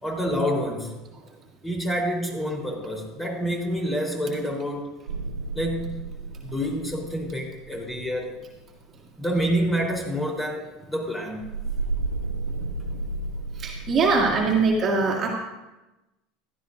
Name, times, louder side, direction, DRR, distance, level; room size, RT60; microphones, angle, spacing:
voice 1, 0.0-1.0 1.6-4.9 5.5-6.0 6.4-8.3 9.2-11.4, equal, 15° left, 0 dB, 3.8 m, -27 dB
sound 1, 5.1-8.6 11.4-14.7, right 2 dB, 90° right, 0.4 m, -33 dB
voice 2, 13.5-15.3, right 4 dB, 40° right, -1 dB, 2.2 m, -23 dB
15.5 x 12.5 x 2.6 m, 1.0 s
hypercardioid pair, 80°, 0 cm